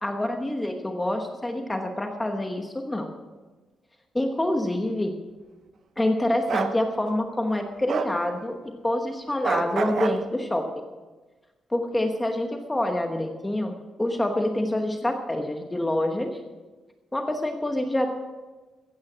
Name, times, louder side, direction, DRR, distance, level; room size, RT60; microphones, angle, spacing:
voice 1, 0.0-3.1 4.1-5.1 6.0-8.5 8.8-10.9 11.7-16.4 17.1-18.1, left 1 dB, 10° left, 4 dB, 1.1 m, -26 dB
Bark, 6.5-6.7 7.9-8.1 9.4-10.2, right 6 dB, 55° right, 0.8 m, -27 dB
14.5 x 9.6 x 6.2 m, 1.2 s
cardioid pair, 130°, 0 cm